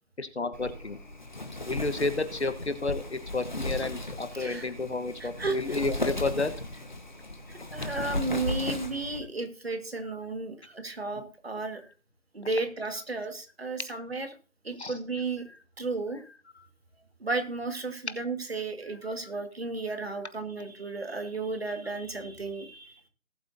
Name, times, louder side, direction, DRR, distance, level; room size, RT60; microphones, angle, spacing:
voice 1, 0.2-1.0 1.7-6.5 7.6-7.7 14.8-14.9, left 3 dB, 55° left, 10 dB, 1.2 m, -31 dB
Wind, 0.5-9.2, left 1 dB, 35° left, 1.2 m, -36 dB
voice 2, 4.3-4.7 5.2-5.8 7.5-11.8 12.3-14.3 14.6-15.5 15.8-16.2 17.2-23.0, right 3 dB, 45° right, 7 dB, 1.9 m, -33 dB
19.0 x 8.0 x 2.7 m, 0.36 s
figure-of-eight pair, 175°, 41 cm